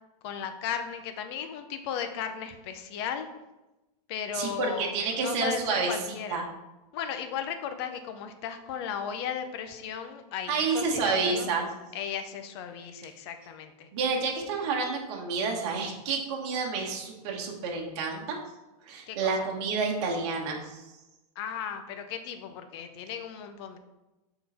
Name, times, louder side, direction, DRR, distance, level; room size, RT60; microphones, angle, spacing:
voice 1, 0.2-3.3 4.1-6.4 6.9-11.5 11.9-13.9 19.1-19.5 21.4-23.8, left 8 dB, 40° left, 8 dB, 0.6 m, -36 dB
voice 2, 4.3-6.0 6.3-6.4 10.5-11.7 13.9-18.4 18.8-20.8, right 4 dB, 45° right, -1 dB, 1.2 m, -29 dB
6.5 x 3.9 x 4.2 m, 1.0 s
supercardioid pair, 165°, 20 cm